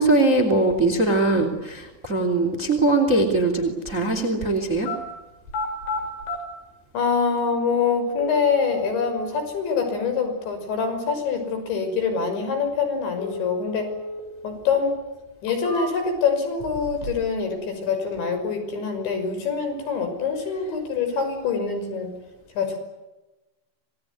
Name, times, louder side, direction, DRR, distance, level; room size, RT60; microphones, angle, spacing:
voice 1, 0.0-4.9, right 2 dB, 20° right, 7 dB, 3.0 m, -21 dB
sound 1, 4.7-5.0 5.4-6.4 7.4-7.5 8.2-9.2 13.2-14.2 14.6-14.7 15.3-16.2 16.6-17.3 17.6-18.2, left 2 dB, 85° left, 9.2 m, -33 dB
voice 2, 6.9-13.9 14.4-15.0 15.4-22.1 22.6-22.8, left 5 dB, 65° left, 6 dB, 8.1 m, -25 dB
27.0 x 21.0 x 9.8 m, 1.0 s
omnidirectional pair, 5.6 m